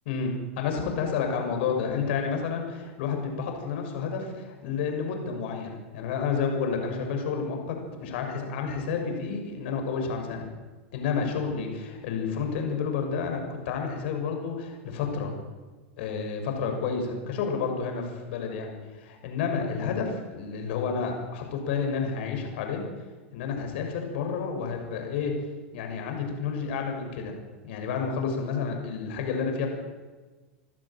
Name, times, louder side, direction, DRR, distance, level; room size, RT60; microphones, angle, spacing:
voice 1, 0.1-10.4 10.9-15.3 16.0-22.8 23.3-25.3 25.7-27.3 27.6-29.7, left 5 dB, 65° left, 3 dB, 6.7 m, -30 dB
25.0 x 12.5 x 9.2 m, 1.3 s
hypercardioid pair, 105°, 6 cm